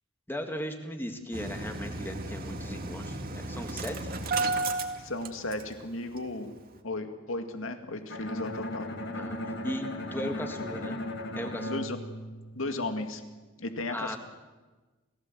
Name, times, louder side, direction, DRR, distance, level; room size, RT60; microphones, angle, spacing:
voice 1, 0.3-4.1 9.1-9.4 9.6-11.0 11.3-11.7 13.9-14.2, equal, 10° left, 5 dB, 1.8 m, -37 dB
Engine starting, 1.3-5.9 6.2-6.3 6.6-6.7, right 3 dB, 45° right, 2.0 m, -33 dB
voice 2, 5.0-6.5 6.8-8.9 11.7-12.0 12.5-13.2 13.6-14.2, left 2 dB, 90° left, 6 dB, 2.2 m, -35 dB
Bowed string instrument, 8.1-13.0, left 1 dB, 60° left, 2.0 m, -37 dB
29.5 x 16.5 x 7.7 m, 1.3 s
head